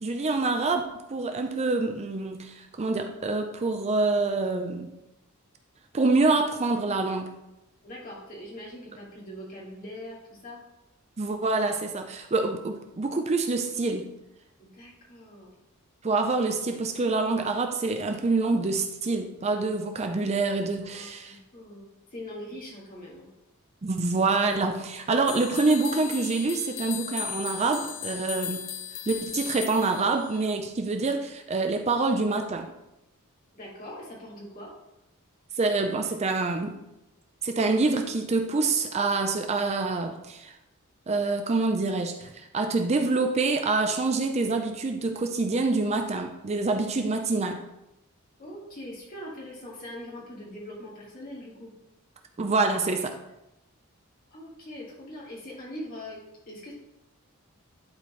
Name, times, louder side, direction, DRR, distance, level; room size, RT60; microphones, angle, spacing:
voice 1, 0.0-4.9 5.9-7.3 11.2-14.1 16.0-21.4 23.8-28.6 29.1-32.7 35.6-36.8 37.4-40.5 41.1-47.6 52.4-53.1, right 3 dB, 30° right, 5 dB, 0.5 m, -26 dB
voice 2, 7.8-10.6 14.6-15.5 20.8-23.3 33.5-34.7 48.4-51.7 54.3-56.2 56.5-56.7, left 1 dB, 40° left, -5 dB, 2.3 m, -42 dB
sound 1, 25.3-30.5, left 10 dB, 75° left, 0.6 m, -37 dB
11.0 x 4.4 x 3.2 m, 0.91 s
head